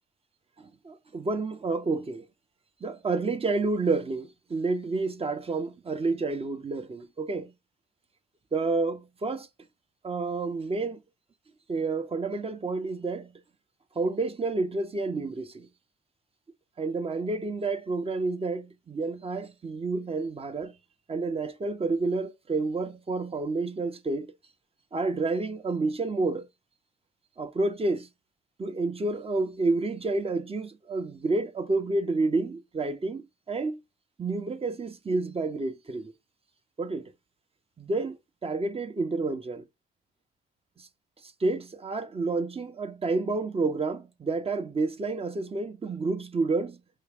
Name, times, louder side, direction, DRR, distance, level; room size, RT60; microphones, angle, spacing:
voice 1, 0.6-2.2 2.8-7.5 8.5-9.5 10.0-11.0 11.7-13.3 13.9-15.7 16.8-20.8 21.1-24.3 24.9-26.5 27.4-28.1 28.6-33.8 34.2-36.1 36.8-37.1 37.8-39.7 40.8-40.9 41.2-46.8, right 3 dB, 30° right, 1.0 m, -29 dB
5.5 x 2.5 x 3.6 m
cardioid pair, 90°, 20 cm